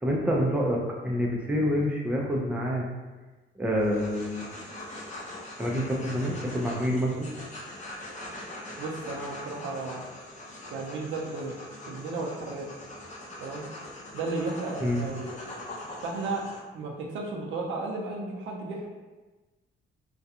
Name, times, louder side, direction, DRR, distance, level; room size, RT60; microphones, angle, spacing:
voice 1, 0.0-2.9 3.6-4.4 5.6-7.3 14.8-15.1, equal, 5° right, -2 dB, 0.5 m, -27 dB
sound 1, 3.8-16.6, left 1 dB, 35° left, 0.7 m, -42 dB
voice 2, 8.8-10.0 10.7-11.6 11.9-12.7 13.4-13.6 14.1-15.4 16.0-16.5 16.7-18.9, right 3 dB, 80° right, -1 dB, 0.5 m, -34 dB
2.4 x 2.2 x 2.7 m, 1.2 s
cardioid pair, 90°, 20 cm